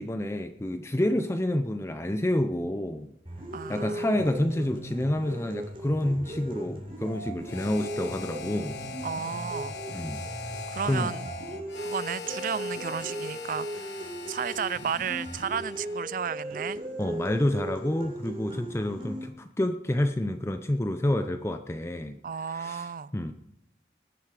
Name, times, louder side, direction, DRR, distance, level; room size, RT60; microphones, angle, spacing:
voice 1, 0.0-3.1 3.7-8.8 9.9-10.5 10.8-11.1 17.0-22.2 22.5-23.3, left 1 dB, 15° left, 0.5 m, -29 dB
sound 1, 3.2-19.2, right 1 dB, 30° right, 3.3 m, -38 dB
voice 2, 3.5-4.1 9.0-9.8 10.7-11.3 11.8-16.8 22.2-23.1, right 7 dB, 50° right, 0.4 m, -33 dB
Harmonica, 7.4-16.1, left 4 dB, 80° left, 1.2 m, -41 dB
20.0 x 7.0 x 4.8 m
head